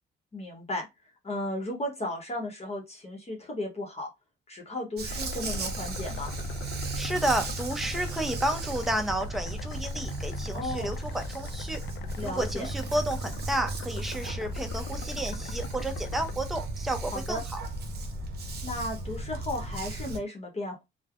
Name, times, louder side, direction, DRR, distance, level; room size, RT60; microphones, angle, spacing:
voice 1, 0.3-0.9 1.2-4.1 4.5-6.3 10.5-10.9 12.2-12.7 17.1-17.4 18.6-20.8, left 1 dB, 30° left, 0.9 m, -35 dB
Dog, 5.0-20.2, right 2 dB, 55° right, 0.7 m, -35 dB
sound 1, 5.1-16.4, left 8 dB, 70° left, 0.5 m, -46 dB
voice 2, 7.0-11.8 12.2-17.6, right 1 dB, ahead, 0.5 m, -31 dB
3.2 x 2.1 x 2.4 m
cardioid pair, 90°, 20 cm